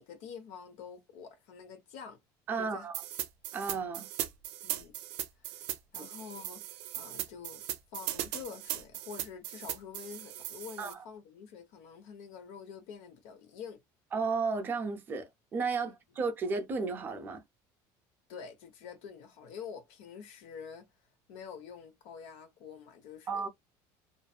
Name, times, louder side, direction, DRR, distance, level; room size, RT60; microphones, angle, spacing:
voice 1, 0.0-2.2 2.6-2.9 4.6-4.9 5.4-5.6 5.9-7.6 7.9-13.8 15.8-15.9 18.3-20.9 21.3-23.5, left 6 dB, 75° left, 0.9 m, -47 dB
voice 2, 2.5-2.9 3.5-4.1 10.8-11.0 14.1-15.2 15.5-17.4 23.3-23.5, right 4 dB, 20° right, 0.5 m, -33 dB
sound 1, 2.9-10.9, right 13 dB, 75° right, 0.5 m, -38 dB
2.5 x 2.4 x 2.3 m
cardioid pair, 175°, 9 cm